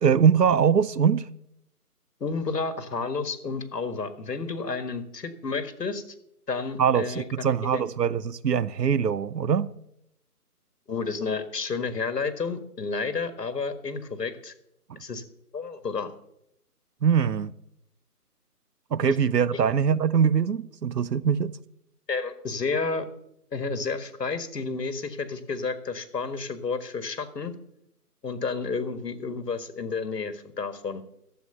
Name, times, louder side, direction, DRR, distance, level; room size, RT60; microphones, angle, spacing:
voice 1, 0.0-1.3 6.8-9.7 14.9-15.0 17.0-17.5 18.9-21.6, right 7 dB, 85° right, 0.8 m, -22 dB
voice 2, 2.2-6.0 6.5-7.8 10.9-14.5 15.0-15.2 15.5-16.1 19.1-19.2 19.5-19.6 22.1-23.1 23.5-27.5 28.2-31.1, left 4 dB, 90° left, 1.8 m, -31 dB
13.0 x 8.0 x 6.8 m
hypercardioid pair, 170°, 47 cm